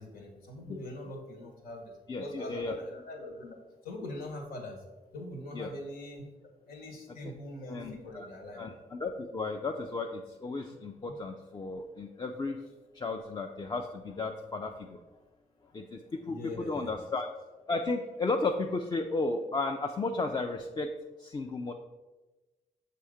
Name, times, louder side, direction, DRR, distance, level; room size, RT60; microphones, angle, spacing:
voice 1, 0.0-3.6 3.8-4.8 5.1-8.7 11.1-11.2 16.2-17.0, left 1 dB, 85° left, 1 dB, 1.4 m, -43 dB
voice 2, 2.1-2.8 5.5-5.7 7.2-7.3 7.6-8.3 8.6-12.6 12.9-15.0 15.7-17.3 17.7-20.9 21.2-21.7, left 3 dB, 30° left, 2 dB, 0.5 m, -34 dB
6.8 x 2.8 x 5.0 m, 1.1 s
cardioid pair, 75°, 15 cm